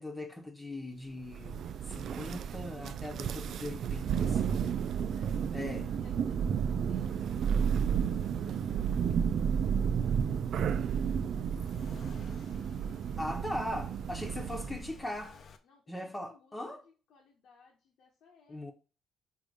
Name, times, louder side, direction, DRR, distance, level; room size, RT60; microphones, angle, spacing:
voice 1, 0.0-4.7 5.5-5.9 13.2-15.3 15.9-16.8 18.5-18.7, left 1 dB, 15° left, 1.1 m, -39 dB
Thunder, 1.3-14.9, right 7 dB, 65° right, 0.3 m, -32 dB
Accelerating revving vroom, 3.6-15.6, left 7 dB, 55° left, 0.8 m, -56 dB
voice 2, 5.1-9.8 10.6-11.5 12.0-13.7 14.3-18.6, left 5 dB, 80° left, 1.3 m, -65 dB
5.3 x 3.6 x 5.0 m
cardioid pair, 90°, 0 cm